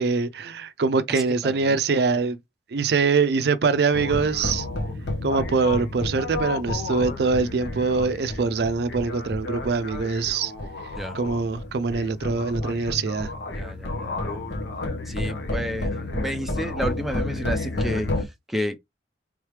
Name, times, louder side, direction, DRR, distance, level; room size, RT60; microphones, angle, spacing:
voice 1, 0.0-2.4 2.7-4.7 5.2-10.5 11.1-13.3, right 4 dB, 60° right, 0.4 m, -23 dB
voice 2, 1.1-1.7 11.0-11.2 13.5-14.4 15.1-18.8, equal, ahead, 0.5 m, -31 dB
sound 1, 3.9-18.2, left 2 dB, 75° left, 1.0 m, -31 dB
3.5 x 3.2 x 3.2 m
head